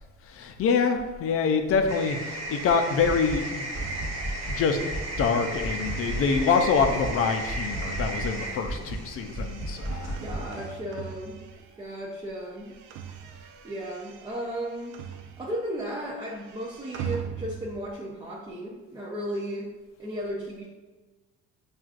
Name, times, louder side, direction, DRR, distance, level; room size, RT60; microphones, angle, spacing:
voice 1, 0.2-4.0 4.5-10.2, left 5 dB, 45° left, 6 dB, 0.4 m, -26 dB
sound 1, 1.9-10.7, right 1 dB, 55° right, 0.8 m, -36 dB
sound 2, 2.7-12.0 12.3-15.8 16.0-17.9, right 8 dB, 75° right, 0.5 m, -43 dB
sound 3, 3.0-3.4 3.7-4.6 4.9-5.3 5.6-6.5 6.8-7.2 7.5-8.3 8.6-9.0 9.3-10.4, right 1 dB, 35° right, 1.2 m, -34 dB
voice 2, 10.2-11.4 11.8-12.8 13.6-15.0 15.4-19.7 20.0-20.7, equal, 15° right, -5 dB, 0.4 m, -35 dB
6.0 x 2.4 x 2.4 m, 1.3 s
cardioid pair, 135°, 32 cm